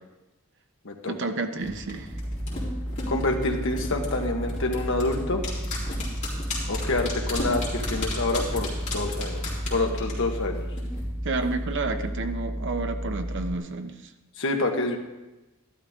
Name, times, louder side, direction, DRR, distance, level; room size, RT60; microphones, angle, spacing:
voice 1, 1.1-2.1 11.2-14.1, right 3 dB, 60° right, 7 dB, 0.9 m, -30 dB
sound 1, 1.6-11.0 11.3-11.4, left 2 dB, 35° left, 4.0 m, -34 dB
sound 2, 2.1-13.5, equal, 5° right, 0.4 m, -33 dB
voice 2, 3.1-5.4 6.7-9.4 9.7-10.7 14.4-15.0, left 2 dB, 60° left, 2 dB, 1.5 m, -27 dB
13.5 x 12.0 x 3.7 m, 1.1 s
head